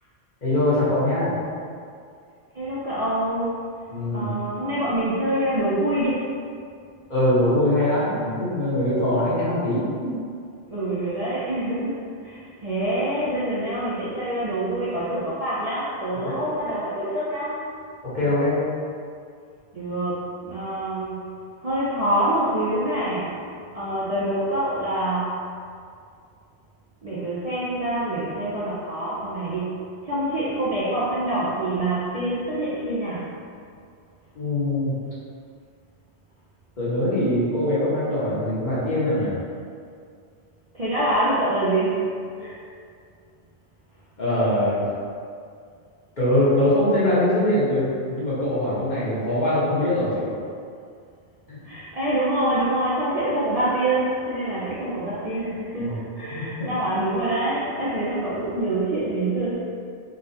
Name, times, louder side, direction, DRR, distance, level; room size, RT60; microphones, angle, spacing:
voice 1, 0.4-1.3 3.9-4.3 7.1-10.1 16.2-16.4 18.0-18.6 34.3-34.9 36.8-39.3 44.2-44.8 46.2-50.3 51.5-51.6 55.8-55.9 56.3-56.4, left 1 dB, 45° left, -10 dB, 1.1 m, -22 dB
voice 2, 2.5-3.6 4.1-6.3 10.7-17.6 19.7-21.3 21.6-23.4 23.7-25.4 27.0-33.3 40.7-42.1 42.4-42.6 51.6-59.6, right 1 dB, 45° right, -10 dB, 0.5 m, -26 dB
3.9 x 2.4 x 2.7 m, 2.3 s
omnidirectional pair, 1.1 m